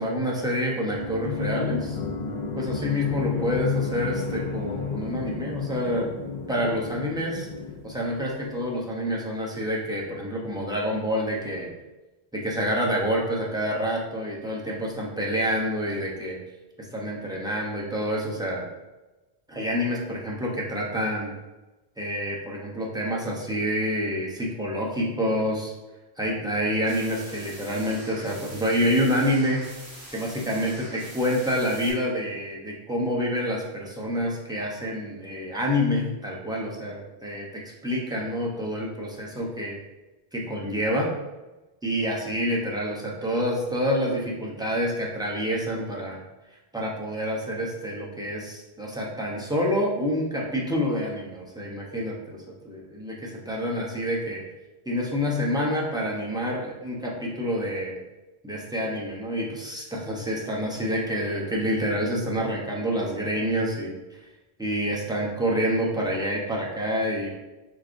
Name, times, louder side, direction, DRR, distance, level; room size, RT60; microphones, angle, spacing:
voice 1, 0.0-2.0 2.6-6.1 6.5-7.5 7.8-11.7 12.3-16.4 16.9-18.7 19.5-21.3 22.0-25.7 26.2-29.6 30.1-39.8 40.3-41.1 41.8-46.2 46.7-54.4 54.9-58.0 58.4-64.0 64.6-67.3, equal, 5° right, -3 dB, 0.6 m, -27 dB
sound 1, 0.9-8.5, left 5 dB, 50° left, 0.6 m, -32 dB
sound 2, 26.8-31.9, right 1 dB, 65° right, 1.4 m, -44 dB
4.9 x 3.6 x 2.5 m, 1.1 s
omnidirectional pair, 1.0 m